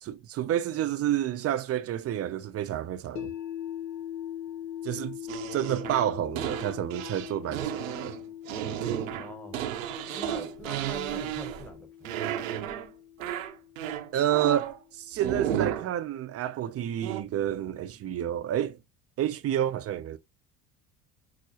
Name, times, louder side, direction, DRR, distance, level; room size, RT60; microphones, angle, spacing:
voice 1, 0.0-3.3 4.8-5.2 5.5-8.1 14.1-18.8 19.2-20.2, right 11 dB, 40° right, 0.6 m, -29 dB
sound 1, 3.2-15.3, left 11 dB, 45° left, 1.0 m, -42 dB
sound 2, 5.3-11.8 12.0-12.9 13.2-14.8 15.2-15.9 17.0-17.2, right 11 dB, 85° right, 0.7 m, -33 dB
voice 2, 9.1-9.6 10.1-12.6, equal, 5° left, 1.4 m, -44 dB
6.0 x 2.0 x 2.8 m
hypercardioid pair, 75°, 38 cm